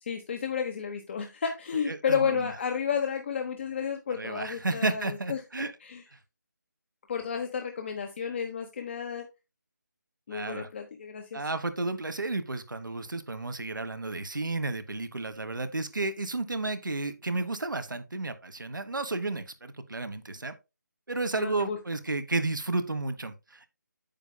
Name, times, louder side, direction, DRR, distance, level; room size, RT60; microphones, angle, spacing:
voice 1, 0.0-5.4 5.8-6.0 7.1-9.3 10.3-11.5 21.3-21.8, left 7 dB, 35° left, 1.1 m, -32 dB
voice 2, 1.9-2.5 4.2-5.7 10.3-10.7 11.3-20.5 21.1-23.7, right 2 dB, 85° right, 1.3 m, -32 dB
9.0 x 7.2 x 2.2 m
figure-of-eight pair, 160°, 10 cm